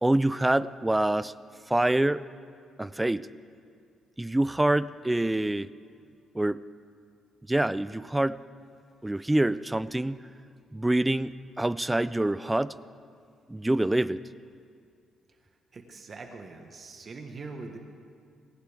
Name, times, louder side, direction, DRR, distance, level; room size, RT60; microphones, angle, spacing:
voice 1, 0.0-1.3 1.7-2.2 2.8-3.3 4.2-5.7 6.3-6.6 7.5-8.4 9.0-10.3 10.7-12.7 13.5-14.2, right 1 dB, 10° right, 17 dB, 0.4 m, -26 dB
voice 2, 15.7-17.8, right 3 dB, 40° right, 4 dB, 1.4 m, -42 dB
20.5 x 18.0 x 3.6 m, 2.3 s
cardioid pair, 90°, 0 cm